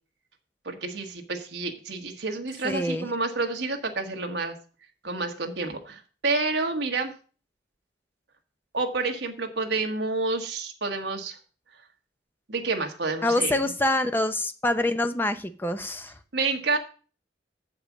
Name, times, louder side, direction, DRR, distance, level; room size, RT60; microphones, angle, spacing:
voice 1, 0.6-4.5 5.0-7.1 8.7-11.4 12.5-13.6 16.3-16.8, right 3 dB, 65° right, 3 dB, 1.3 m, -29 dB
voice 2, 2.6-3.1 13.2-16.1, left 1 dB, 10° left, 9 dB, 0.6 m, -26 dB
7.1 x 5.2 x 7.2 m, 0.38 s
head